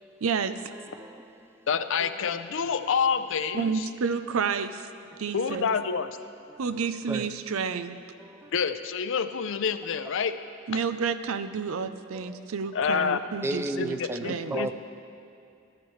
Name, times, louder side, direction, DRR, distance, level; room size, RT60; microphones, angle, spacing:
voice 1, 0.2-0.6 3.5-4.9 5.2-5.7 6.6-8.0 10.7-14.6, right 5 dB, 80° right, 0.5 m, -30 dB
voice 2, 0.8-1.5 2.0-2.4 7.1-7.3 8.2-8.5 12.1-12.5 13.4-14.7, right 2 dB, 10° right, 0.4 m, -35 dB
voice 3, 1.7-3.9 5.3-6.1 8.5-10.4 10.7-10.8 12.7-13.2 13.8-14.7, left 6 dB, 65° left, 0.5 m, -28 dB
13.5 x 13.5 x 3.2 m
head